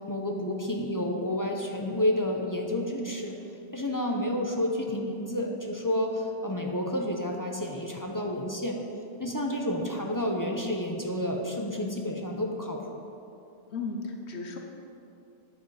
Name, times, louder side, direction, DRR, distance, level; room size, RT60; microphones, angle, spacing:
voice 1, 0.1-3.4 3.7-8.8 9.2-13.0, left 1 dB, 20° left, 1 dB, 0.6 m, -30 dB
voice 2, 13.7-14.6, left 4 dB, 70° left, 2 dB, 1.1 m, -35 dB
9.2 x 7.4 x 4.8 m, 2.7 s
omnidirectional pair, 1.2 m